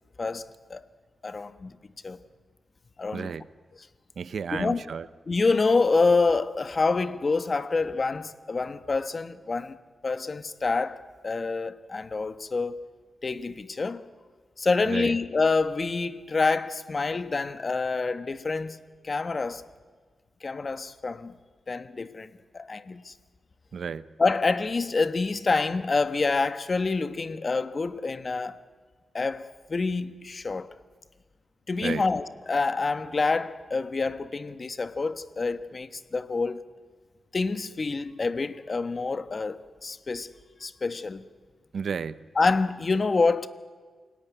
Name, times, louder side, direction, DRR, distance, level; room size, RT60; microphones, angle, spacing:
voice 1, 0.2-0.8 1.2-1.7 2.0-2.2 3.0-3.3 4.5-4.8 5.3-9.8 10.0-11.0 11.2-12.9 13.2-14.0 14.6-18.8 19.0-19.6 20.4-21.4 21.7-23.1 24.2-28.6 29.1-30.7 31.7-36.6 37.3-40.3 40.6-41.2 42.3-43.5, left 3 dB, 40° left, 1.2 m, -27 dB
voice 2, 3.1-3.5 4.2-5.1 14.9-15.2 23.7-24.1 31.8-32.0 41.7-42.3, right 6 dB, 70° right, 0.7 m, -32 dB
28.0 x 17.5 x 9.5 m
cardioid pair, 90°, 0 cm